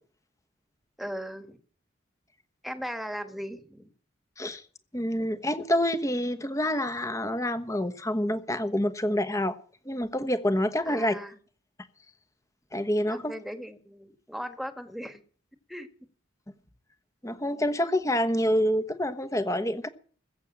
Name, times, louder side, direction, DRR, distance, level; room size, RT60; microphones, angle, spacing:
voice 1, 1.0-1.6 2.6-3.9 5.2-5.6 10.8-11.3 13.0-15.2 15.7-15.9, equal, ahead, 1.5 m, -38 dB
voice 2, 4.9-9.6 9.8-11.1 12.7-13.3 17.2-19.9, equal, 15° left, 1.1 m, -27 dB
20.5 x 8.3 x 7.3 m
head